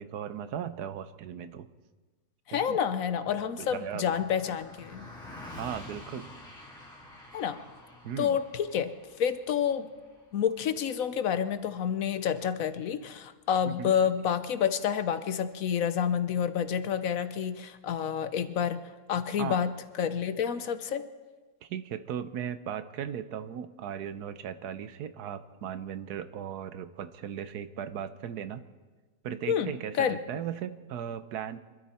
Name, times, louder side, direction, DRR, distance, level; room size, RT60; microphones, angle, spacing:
voice 1, 0.0-1.7 2.5-2.8 3.4-4.0 5.6-6.3 8.0-8.4 13.6-13.9 19.4-19.6 21.6-28.6 29.2-31.6, right 9 dB, 85° right, 12 dB, 1.3 m, -37 dB
voice 2, 2.5-5.1 7.3-7.6 8.2-8.9 9.2-9.9 10.3-18.8 19.1-21.1 29.5-30.2, left 8 dB, 65° left, 11 dB, 1.1 m, -29 dB
Car passing by, 3.1-12.7, left 1 dB, 5° left, 3.0 m, -49 dB
25.5 x 13.0 x 4.3 m, 1.3 s
omnidirectional pair, 1.6 m